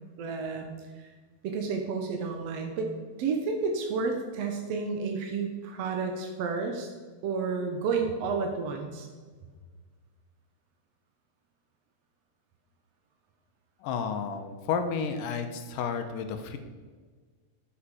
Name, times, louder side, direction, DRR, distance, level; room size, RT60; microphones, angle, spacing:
voice 1, 0.2-1.1 1.4-2.9 3.2-6.9 7.2-9.1, right 4 dB, 70° right, 3 dB, 1.6 m, -31 dB
voice 2, 13.8-16.6, left 6 dB, 80° left, 7 dB, 2.3 m, -31 dB
10.5 x 8.5 x 4.8 m, 1.5 s
omnidirectional pair, 4.1 m